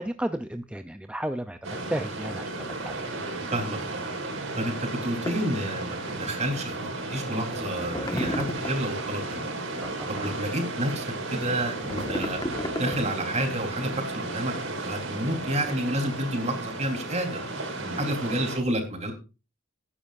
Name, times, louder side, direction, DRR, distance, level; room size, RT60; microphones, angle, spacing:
voice 1, 0.0-3.1 9.8-10.3 17.8-18.0, right 1 dB, 5° right, 8 dB, 0.6 m, -34 dB
sound 1, 1.6-18.6, right 2 dB, 75° right, 4.8 m, -34 dB
voice 2, 3.5-4.1 4.6-4.8 5.0-9.5 10.1-12.4 12.8-17.4 18.0-19.1, right 1 dB, 35° right, 3 dB, 3.7 m, -30 dB
sound 2, 5.3-5.5 7.1-7.2 7.5-8.9 11.5-13.3, left 1 dB, 20° left, 1.6 m, -33 dB
19.0 x 9.9 x 2.6 m, 0.31 s
head